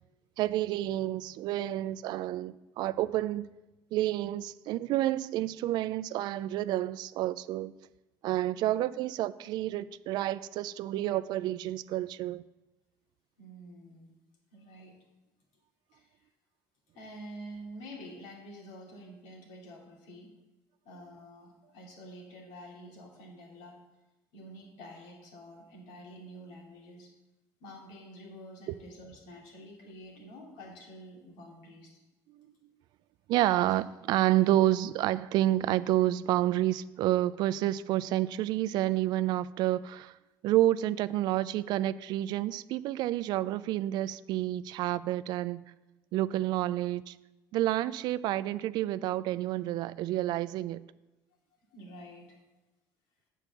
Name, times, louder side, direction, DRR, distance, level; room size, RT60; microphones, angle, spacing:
voice 1, 0.4-3.5 3.9-7.7 8.2-12.4 28.7-28.8 32.3-32.5 33.3-40.2 40.4-45.6 46.1-47.2 47.5-50.8, right 14 dB, 65° right, 0.3 m, -29 dB
voice 2, 13.4-14.1 14.5-15.0 15.9-16.1 16.9-20.3 20.8-23.8 24.3-27.1 27.6-32.0 34.4-34.6 48.4-48.5 51.7-52.4, equal, 90° left, 2.5 m, -48 dB
8.5 x 4.6 x 7.1 m
cardioid pair, 125°, 8 cm